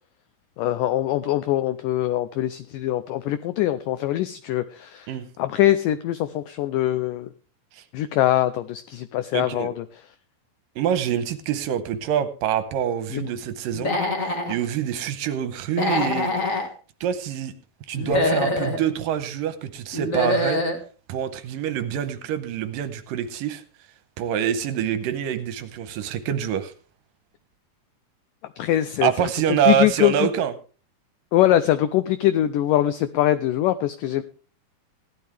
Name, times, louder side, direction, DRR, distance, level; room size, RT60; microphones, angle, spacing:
voice 1, 0.6-5.1 5.4-7.3 7.9-9.9 13.1-13.3 28.6-29.1 29.7-30.3 31.3-34.2, left 13 dB, 80° left, 11 dB, 2.0 m, -22 dB
voice 2, 9.3-9.7 10.8-14.0 14.3-16.3 17.0-17.5 17.9-20.6 21.1-23.6 24.2-26.7 29.0-30.5, right 9 dB, 75° right, 11 dB, 2.4 m, -25 dB
Human voice / Animal, 13.7-14.6 15.7-16.7 17.9-18.8 19.9-20.8, left 2 dB, 45° left, 1.0 m, -24 dB
16.5 x 11.5 x 3.4 m, 0.39 s
omnidirectional pair, 4.4 m